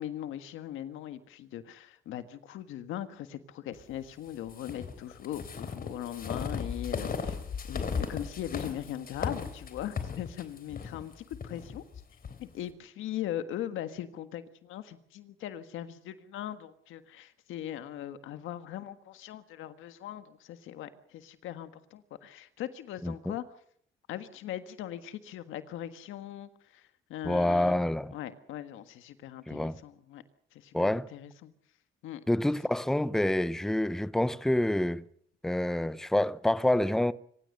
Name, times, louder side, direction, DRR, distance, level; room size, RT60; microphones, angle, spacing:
voice 1, 0.0-7.4 7.7-11.8 12.4-23.4 24.1-27.8 28.1-30.2 30.5-31.5 32.0-32.2, left 11 dB, 90° left, 1.6 m, -40 dB
sound 1, 4.5-12.4, left 5 dB, 45° left, 3.5 m, -36 dB
voice 2, 27.2-28.1 29.5-29.8 30.7-31.1 32.3-35.0 35.4-37.1, left 1 dB, ahead, 0.8 m, -27 dB
25.5 x 16.0 x 6.7 m
cardioid pair, 90°, 20 cm